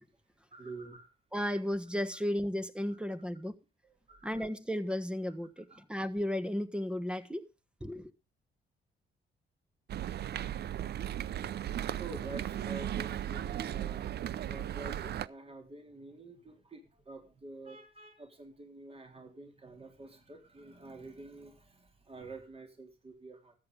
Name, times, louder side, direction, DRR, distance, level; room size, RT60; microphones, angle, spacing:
voice 1, 0.5-1.1 2.9-3.0 4.1-4.4 5.7-5.8 12.0-14.1 14.5-23.5, right 2 dB, 30° right, 3.5 m, -48 dB
voice 2, 1.3-3.5 4.2-7.4 7.8-8.1, left 1 dB, 5° right, 1.4 m, -34 dB
sound 1, 9.9-15.3, right 11 dB, 55° right, 0.6 m, -36 dB
13.5 x 8.7 x 5.2 m
cardioid pair, 90°, 20 cm